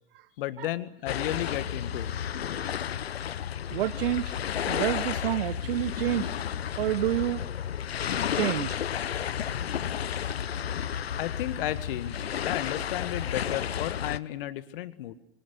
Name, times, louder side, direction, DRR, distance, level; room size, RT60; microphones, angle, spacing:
voice 1, 0.4-2.1 11.2-15.1, left 13 dB, 60° left, 14 dB, 1.8 m, -33 dB
sound 1, 1.1-14.2, left 9 dB, 80° left, 0.9 m, -32 dB
voice 2, 3.7-4.3 4.7-6.3 6.8-7.4 8.3-8.8, right 14 dB, 65° right, 18 dB, 1.0 m, -28 dB
25.5 x 25.0 x 8.2 m, 0.84 s
figure-of-eight pair, 90°, 31 cm